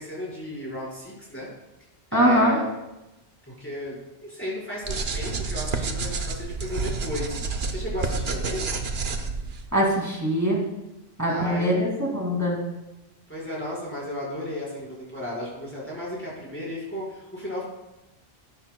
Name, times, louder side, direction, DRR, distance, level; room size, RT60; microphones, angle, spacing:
voice 1, 0.0-1.5 2.1-2.7 3.5-8.6 11.3-11.8 13.3-17.6, left 1 dB, 10° left, -7 dB, 4.7 m, -34 dB
voice 2, 2.1-2.6 9.7-10.6 11.2-12.6, equal, 15° right, -3 dB, 2.4 m, -22 dB
sound 1, 4.8-9.7, right 4 dB, 70° right, 1.2 m, -29 dB
16.5 x 12.5 x 2.3 m, 0.98 s
omnidirectional pair, 1.1 m